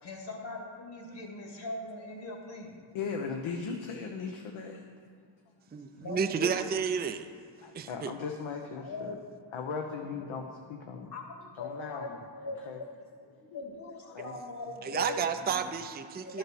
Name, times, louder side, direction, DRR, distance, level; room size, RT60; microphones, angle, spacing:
voice 1, 0.0-2.8 6.0-6.6 8.8-9.2 10.0-10.4 11.1-12.1 12.4-12.8 13.2-15.7 16.2-16.4, left 2 dB, 55° left, 1 dB, 2.4 m, -41 dB
voice 2, 2.9-4.8 7.6-9.1 9.5-11.1 11.6-12.2 12.7-12.8 13.5-13.6 14.1-14.3, left 5 dB, 70° left, 3 dB, 1.0 m, -38 dB
voice 3, 5.7-7.3 7.7-8.1 14.8-16.4, right 6 dB, 20° right, 7 dB, 0.5 m, -31 dB
12.0 x 6.5 x 6.1 m, 2.2 s
cardioid pair, 105°, 50 cm